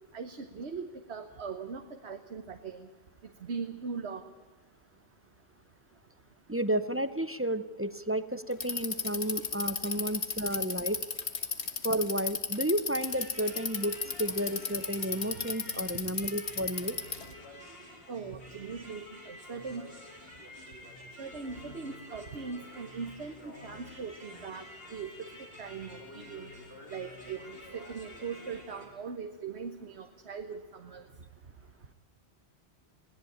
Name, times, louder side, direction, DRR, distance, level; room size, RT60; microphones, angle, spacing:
voice 1, 0.1-2.9 3.4-4.2 18.1-19.9 21.2-24.7 24.9-25.3 25.6-26.5 26.9-31.0, right 5 dB, 75° right, 7 dB, 1.5 m, -40 dB
voice 2, 6.5-11.0 11.8-17.0, right 1 dB, 15° right, 13 dB, 0.6 m, -32 dB
Bicycle, 8.5-17.3, left 5 dB, 75° left, 1.9 m, -34 dB
sound 1, 13.0-28.9, left 1 dB, 60° left, 5.1 m, -49 dB
22.5 x 18.0 x 8.6 m, 1.3 s
omnidirectional pair, 1.1 m